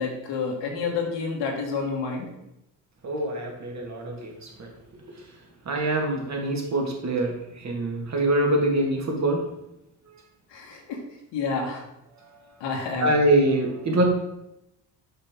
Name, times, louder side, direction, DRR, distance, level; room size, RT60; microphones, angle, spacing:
voice 1, 0.0-2.3 10.5-11.0 11.3-11.9 12.6-13.2, left 4 dB, 85° left, 0 dB, 1.7 m, -29 dB
voice 2, 3.0-4.3 5.7-7.3 7.6-9.4 13.0-14.0, right 1 dB, 40° right, 1 dB, 1.7 m, -24 dB
6.5 x 5.5 x 3.6 m, 0.86 s
cardioid pair, 85°, 42 cm